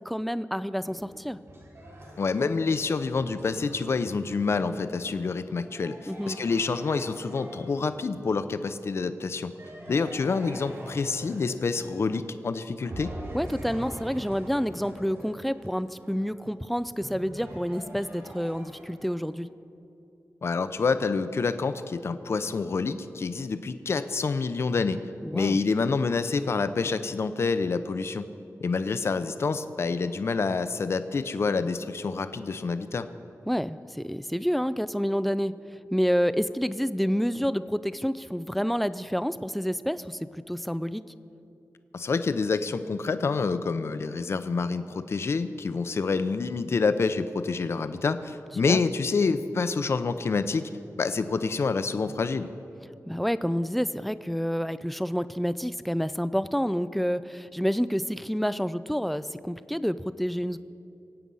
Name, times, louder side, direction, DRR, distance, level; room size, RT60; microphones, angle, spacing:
voice 1, 0.1-1.4 6.1-6.4 13.3-19.5 25.2-25.6 33.5-35.6 35.9-41.0 48.7-48.8 53.1-60.6, equal, ahead, 14 dB, 0.3 m, -28 dB
sound 1, 0.9-8.3 9.6-12.4 12.8-19.3, right 1 dB, 50° right, 4.2 m, -44 dB
voice 2, 2.2-9.5 9.9-13.1 20.4-25.0 25.3-28.3 28.6-33.1 41.9-50.7 51.0-52.5, left 4 dB, 50° left, 11 dB, 0.6 m, -27 dB
23.0 x 8.8 x 5.5 m, 2.7 s
wide cardioid pair, 180°, 6 cm